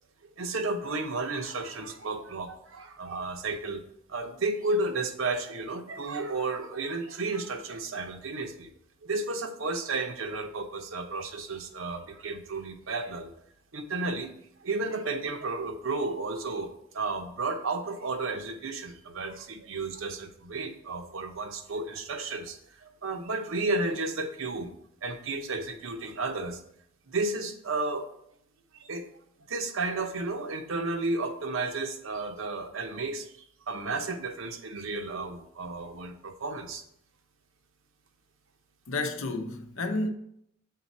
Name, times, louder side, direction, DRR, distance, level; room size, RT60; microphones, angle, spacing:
voice 1, 0.2-3.8 4.1-8.7 9.0-13.3 13.7-14.3 14.6-24.7 25.0-26.6 27.1-28.1 28.7-29.1 29.5-33.3 33.7-36.8, right 3 dB, 80° right, 0.7 m, -33 dB
voice 2, 38.9-40.1, left 2 dB, 80° left, 0.7 m, -31 dB
7.5 x 4.0 x 4.2 m
head